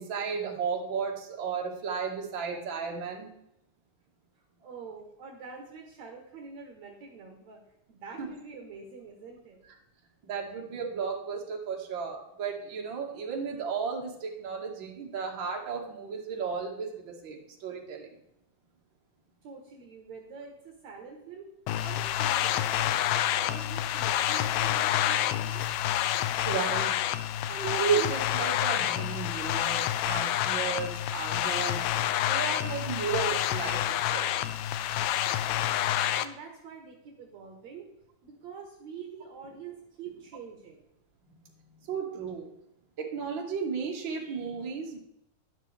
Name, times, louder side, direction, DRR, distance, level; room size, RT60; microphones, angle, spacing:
voice 1, 0.0-3.3 8.2-8.3 10.2-18.2 26.5-26.9 27.5-31.9 32.2-34.3 41.9-42.5 43.0-45.0, right 6 dB, 40° right, 0 dB, 2.2 m, -34 dB
voice 2, 4.4-7.6 7.9-9.7 19.4-21.5 21.8-22.7 23.1-25.6 36.1-37.9 38.2-40.8, right 5 dB, 60° right, 3 dB, 2.4 m, -46 dB
sound 1, 21.7-36.3, left 12 dB, 85° left, 1.6 m, -28 dB
12.0 x 11.0 x 3.4 m, 0.81 s
omnidirectional pair, 3.8 m